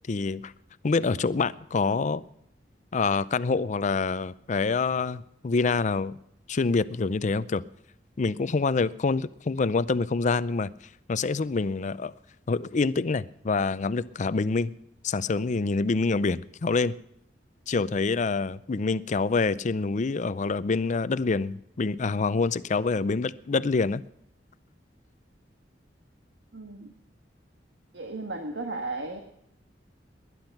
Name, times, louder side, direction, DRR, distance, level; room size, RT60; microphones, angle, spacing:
voice 1, 0.1-0.5 0.8-2.2 2.9-6.2 6.5-7.6 8.2-10.7 11.1-12.1 12.5-14.7 15.0-17.0 17.7-24.0, left 4 dB, 45° left, 0.5 m, -26 dB
voice 2, 26.5-26.9 27.9-29.2, right 2 dB, 80° right, 1.4 m, -35 dB
19.5 x 11.0 x 5.9 m
head